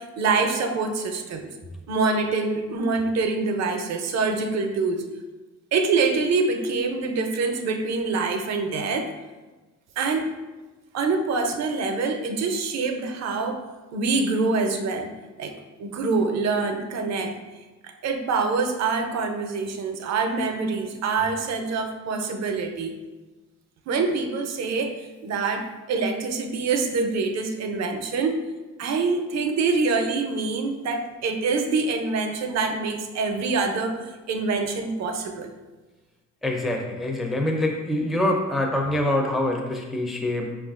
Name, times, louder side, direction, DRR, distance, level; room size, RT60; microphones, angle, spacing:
voice 1, 0.0-1.4 1.9-5.0 5.7-9.1 10.0-10.3 10.9-13.6 13.9-15.1 15.4-15.5 15.8-17.3 17.8-22.9 23.9-28.4 28.8-35.5, right 4 dB, 60° right, 5 dB, 0.5 m, -25 dB
voice 2, 36.4-40.6, left 1 dB, ahead, 1 dB, 0.4 m, -25 dB
5.0 x 2.4 x 2.4 m, 1.2 s
cardioid pair, 90°, 30 cm